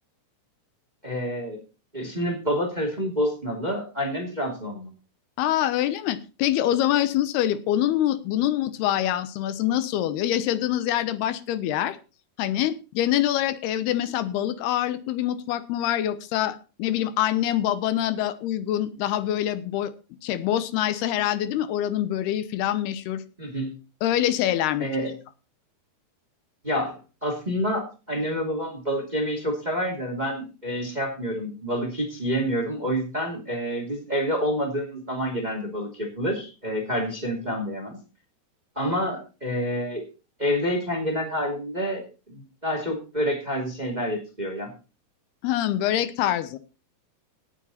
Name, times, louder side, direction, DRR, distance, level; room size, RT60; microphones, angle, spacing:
voice 1, 1.0-1.6 1.9-4.9 23.4-23.7 24.8-25.1 26.6-38.0 38.7-40.0 40.4-44.7, equal, 15° right, 3 dB, 2.3 m, -28 dB
voice 2, 5.4-12.0 12.4-19.9 20.2-23.2 24.0-24.9 45.4-46.6, left 12 dB, 80° left, 13 dB, 2.9 m, -25 dB
18.0 x 7.5 x 4.2 m, 0.32 s
omnidirectional pair, 4.7 m